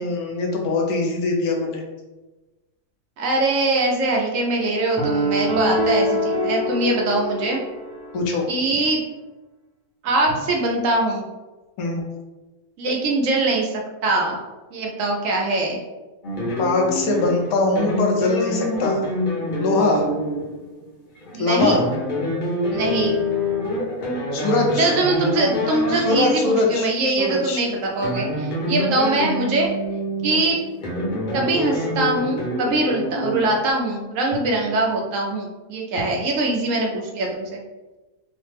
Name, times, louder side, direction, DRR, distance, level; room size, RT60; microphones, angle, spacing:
voice 1, 0.0-1.8 8.1-8.5 11.8-12.0 16.6-19.0 19.6-20.0 21.4-21.8 24.3-24.9 25.9-27.6 30.3-30.5 32.9-33.1, left 3 dB, 85° left, 1 dB, 1.1 m, -22 dB
voice 2, 3.2-7.6 8.5-9.0 10.0-11.2 12.8-14.4 14.7-15.8 21.3-21.8 22.7-23.2 24.8-29.7 30.2-30.6 31.3-37.6, right 2 dB, 70° right, 0 dB, 0.9 m, -22 dB
sound 1, 5.0-8.2, equal, 30° right, 0.5 m, -24 dB
sound 2, 16.2-26.8 27.8-33.7, left 1 dB, 45° left, 0.7 m, -26 dB
3.1 x 2.0 x 3.2 m, 1.1 s
omnidirectional pair, 1.5 m